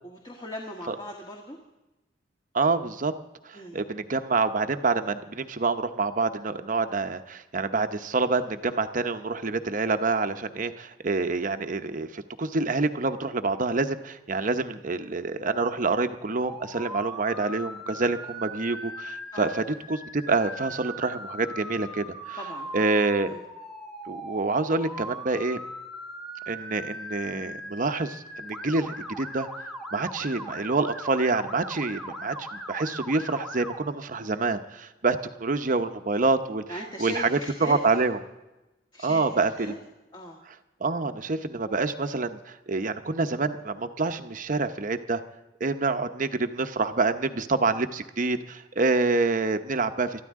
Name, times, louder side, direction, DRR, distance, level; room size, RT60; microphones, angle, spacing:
voice 1, 0.0-1.6 3.5-3.8 19.3-19.5 22.4-22.9 23.3-23.4 36.7-38.0 38.9-39.2 39.6-39.8 40.1-40.4, left 1 dB, 25° left, 0 dB, 1.7 m, -39 dB
voice 2, 2.5-3.1 3.4-22.4 22.7-23.3 24.1-25.6 26.5-29.5 29.9-36.6 37.0-38.2 39.0-39.8 40.8-45.2 45.6-50.2, right 3 dB, 45° right, 8 dB, 0.8 m, -27 dB
Motor vehicle (road) / Siren, 16.4-33.8, equal, ahead, 1.2 m, -39 dB
22.5 x 13.5 x 3.7 m, 1.0 s
head